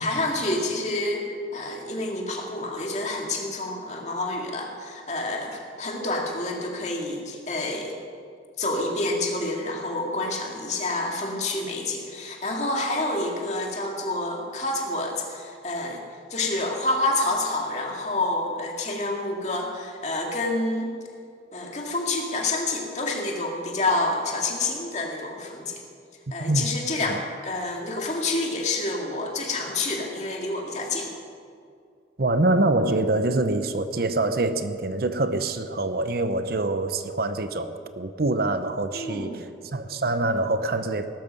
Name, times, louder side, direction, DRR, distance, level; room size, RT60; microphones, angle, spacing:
voice 1, 0.0-1.2 1.5-8.0 8.6-16.0 16.3-20.9 21.5-25.8 26.3-31.1 38.9-39.4, left 2 dB, 35° left, 0 dB, 2.2 m, -28 dB
voice 2, 32.2-39.4 39.7-41.1, right 2 dB, 55° right, 10 dB, 0.7 m, -25 dB
18.0 x 13.0 x 5.3 m, 2.3 s
head